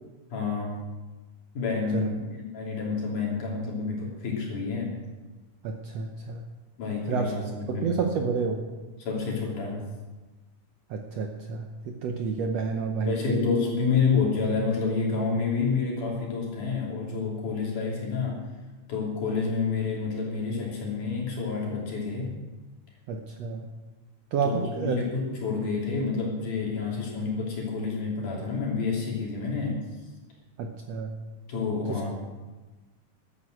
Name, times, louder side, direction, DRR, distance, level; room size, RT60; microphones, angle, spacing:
voice 1, 0.3-0.8 1.5-5.0 6.8-8.0 9.0-9.9 13.0-18.4 18.9-22.4 24.4-29.9 31.5-32.1, left 4 dB, 65° left, -3 dB, 4.6 m, -29 dB
voice 2, 5.6-6.4 7.1-8.7 10.9-13.5 23.1-23.7 24.3-25.0 30.6-31.1 31.9-32.0, right 5 dB, 70° right, 4 dB, 1.7 m, -30 dB
12.5 x 9.5 x 7.8 m, 1.2 s
omnidirectional pair, 3.8 m